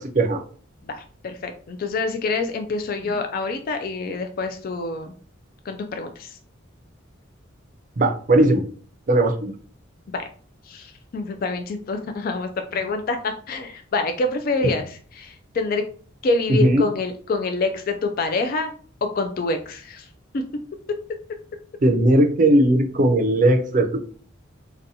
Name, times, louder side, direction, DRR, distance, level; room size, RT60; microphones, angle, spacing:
voice 1, 0.9-5.1 5.7-6.4 10.1-10.3 10.7-15.8 16.2-18.7 19.0-20.1 20.3-20.4, left 3 dB, 45° left, 6 dB, 0.3 m, -26 dB
voice 2, 8.0-8.6 9.1-9.5 16.5-16.8 21.8-24.0, right 1 dB, 40° right, 6 dB, 0.5 m, -18 dB
4.0 x 2.2 x 2.7 m, 0.43 s
head